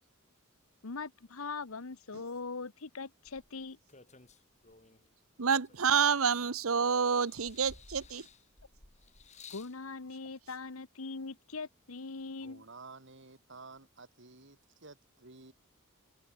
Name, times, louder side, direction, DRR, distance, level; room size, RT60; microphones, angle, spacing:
voice 1, 0.8-3.8 9.5-12.6, left 4 dB, 80° left, 1.1 m, -41 dB
sound 1, 3.3-5.1 5.6-6.7 7.1-9.8 10.7-10.8, left 4 dB, 35° left, 3.1 m, -55 dB
voice 2, 5.4-8.3, right 6 dB, 80° right, 1.0 m, -28 dB
voice 3, 12.4-15.5, right 3 dB, 60° right, 2.5 m, -52 dB
head